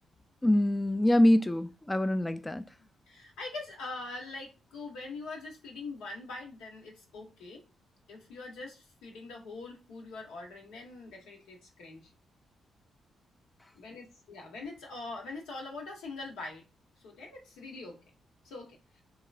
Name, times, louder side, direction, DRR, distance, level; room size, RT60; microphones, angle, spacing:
voice 1, 0.4-2.6, left 1 dB, 15° left, 0.3 m, -24 dB
voice 2, 2.8-7.6 8.1-12.1 13.7-16.7 17.0-18.0 18.4-19.0, left 3 dB, 90° left, 1.0 m, -43 dB
3.0 x 2.9 x 2.3 m
supercardioid pair, 60°, 0 cm